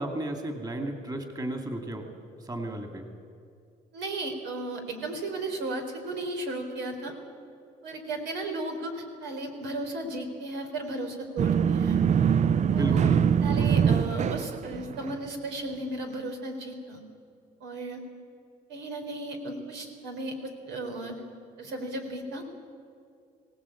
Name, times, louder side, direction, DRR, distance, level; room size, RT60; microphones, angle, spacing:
voice 1, 0.0-2.1 2.4-3.1 12.7-14.0, right 1 dB, 20° right, 4 dB, 2.7 m, -34 dB
voice 2, 3.9-7.1 7.8-12.0 12.7-13.0 13.4-17.0 17.6-18.0 18.7-21.2 21.6-22.4, right 2 dB, 85° right, 4 dB, 3.9 m, -35 dB
sound 1, 11.4-15.3, right 7 dB, 40° right, 0.5 m, -23 dB
23.5 x 18.0 x 8.6 m, 2.4 s
cardioid pair, 115°, 18 cm